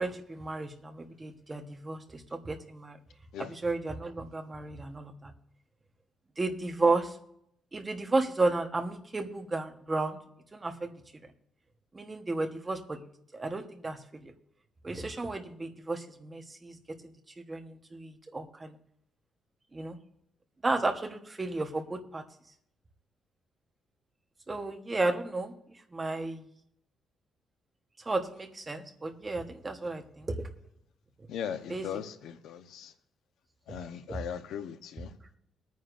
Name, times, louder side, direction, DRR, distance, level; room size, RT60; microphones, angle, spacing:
voice 1, 0.0-3.0 3.4-5.3 6.4-7.2 7.7-10.2 10.5-10.9 11.9-13.0 13.3-14.3 14.8-16.8 17.0-17.1 17.5-18.8 19.7-20.0 20.6-22.2 24.5-25.5 25.9-26.5 28.0-30.5 31.7-31.9 34.1-34.2, right 3 dB, 15° right, 4 dB, 1.2 m, -33 dB
voice 2, 31.3-32.9 33.7-35.1, left 8 dB, 80° left, 9 dB, 0.9 m, -38 dB
21.5 x 9.4 x 2.6 m, 0.73 s
cardioid pair, 170°, 0 cm